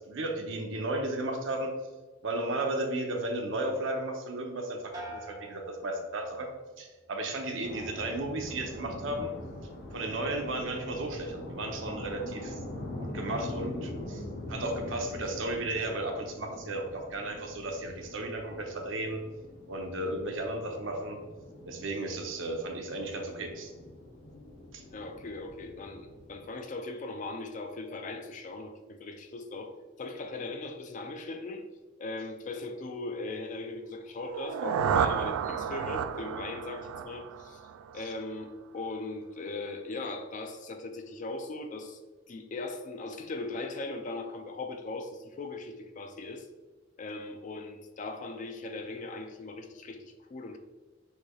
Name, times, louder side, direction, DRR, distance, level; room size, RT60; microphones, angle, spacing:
voice 1, 0.0-1.7 2.2-6.5 6.8-9.3 9.9-12.6 12.9-14.2 14.5-19.2 19.7-21.2 21.6-23.7 24.7-24.8 38.0-38.1, right 2 dB, 65° right, 3 dB, 0.7 m, -34 dB
sound 1, 4.9-6.7 7.1-7.6, right 1 dB, 20° right, 0.8 m, -47 dB
sound 2, 7.6-26.5, left 1 dB, 55° left, 1.1 m, -43 dB
voice 2, 24.9-31.6 32.0-37.6 37.9-42.0 42.3-46.5 47.0-50.6, left 2 dB, 35° left, 6 dB, 0.4 m, -39 dB
sound 3, 34.2-38.1, right 7 dB, 90° right, 0.3 m, -31 dB
6.4 x 3.2 x 2.3 m, 1.3 s
head